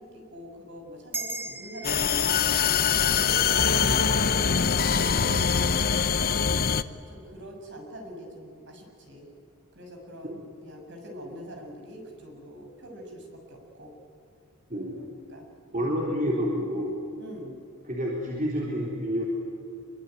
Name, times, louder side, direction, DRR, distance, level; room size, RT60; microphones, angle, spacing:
voice 1, 0.0-6.1 7.1-9.3 9.8-14.0 15.0-15.9 17.2-17.5, equal, 55° right, 1 dB, 7.0 m, -44 dB
sound 1, 1.1-5.8, right 2 dB, 10° right, 1.2 m, -41 dB
sound 2, 1.8-6.8, left 6 dB, 45° left, 0.8 m, -23 dB
voice 2, 14.7-15.1 15.7-17.0 17.9-19.2, equal, 35° right, -3 dB, 4.2 m, -29 dB
26.5 x 24.0 x 9.4 m, 2.6 s
head